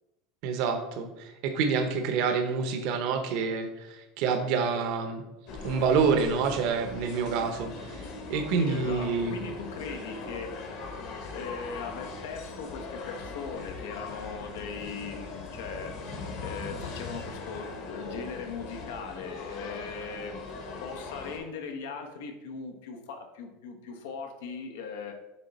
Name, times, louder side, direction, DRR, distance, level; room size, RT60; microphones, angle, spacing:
voice 1, 0.4-5.2 5.6-8.0 8.3-9.3, right 5 dB, 55° right, 6 dB, 0.7 m, -27 dB
sound 1, 5.5-21.4, left 3 dB, 50° left, 1.3 m, -40 dB
voice 2, 8.6-10.6 11.3-16.1 16.4-20.4 20.8-25.1, left 5 dB, 90° left, 5 dB, 1.0 m, -39 dB
7.3 x 3.5 x 4.1 m, 0.97 s
supercardioid pair, 160°, 0 cm